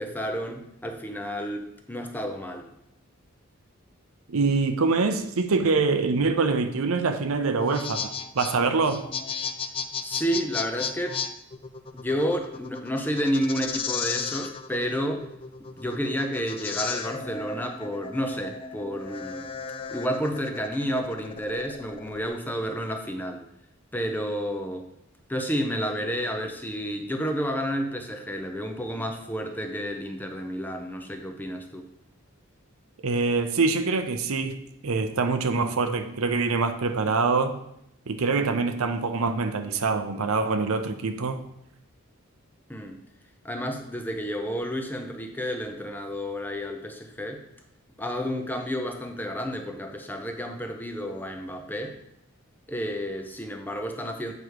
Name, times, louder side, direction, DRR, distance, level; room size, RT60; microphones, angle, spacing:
voice 1, 0.0-2.7 10.0-11.2 11.9-15.3 15.7-19.5 19.9-23.4 23.9-24.9 25.3-31.9 42.7-43.0 43.4-47.4 48.0-52.0 52.7-54.3, equal, 10° left, 4 dB, 0.7 m, -30 dB
voice 2, 4.3-9.0 33.0-37.6 38.1-41.4, right 4 dB, 80° right, 7 dB, 0.6 m, -25 dB
sound 1, 7.5-22.3, left 6 dB, 25° left, 0.3 m, -35 dB
8.0 x 5.1 x 4.8 m, 0.78 s
head